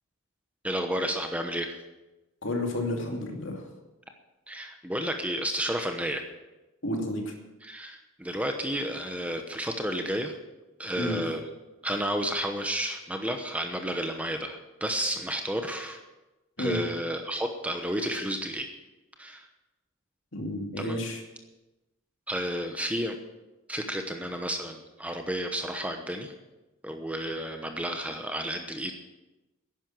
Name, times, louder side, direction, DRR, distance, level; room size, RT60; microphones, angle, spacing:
voice 1, 0.6-1.8 4.5-6.2 7.6-10.4 10.8-11.5 11.8-16.0 16.6-18.7 19.2-19.5 20.8-21.0 22.3-23.2 23.7-26.3 26.8-29.0, right 1 dB, 5° right, 5 dB, 1.0 m, -31 dB
voice 2, 2.4-3.7 6.8-7.3 11.0-11.2 16.6-16.8 20.3-21.2, left 1 dB, 60° left, 2 dB, 2.5 m, -31 dB
11.0 x 10.5 x 7.8 m, 1.0 s
head